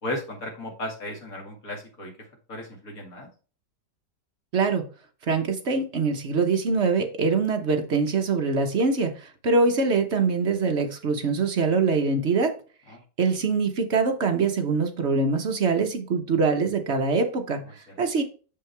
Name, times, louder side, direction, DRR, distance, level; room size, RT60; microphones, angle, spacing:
voice 1, 0.0-2.1 2.5-3.3 12.9-13.0, left 1 dB, 50° left, 1 dB, 2.5 m, -35 dB
voice 2, 4.5-4.8 5.3-12.5 13.2-17.6 18.0-18.2, right 4 dB, 50° right, 5 dB, 0.9 m, -23 dB
6.5 x 5.6 x 3.3 m, 0.37 s
omnidirectional pair, 2.0 m